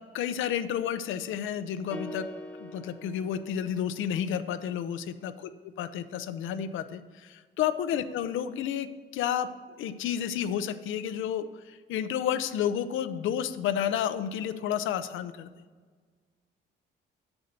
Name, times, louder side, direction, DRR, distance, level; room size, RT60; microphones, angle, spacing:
voice 1, 0.1-2.3 2.6-9.5 9.8-15.5, left 9 dB, 80° left, 12 dB, 0.6 m, -31 dB
sound 1, 1.9-4.2, left 1 dB, 5° left, 1.0 m, -43 dB
8.0 x 7.0 x 5.2 m, 1.5 s
cardioid pair, 90°, 20 cm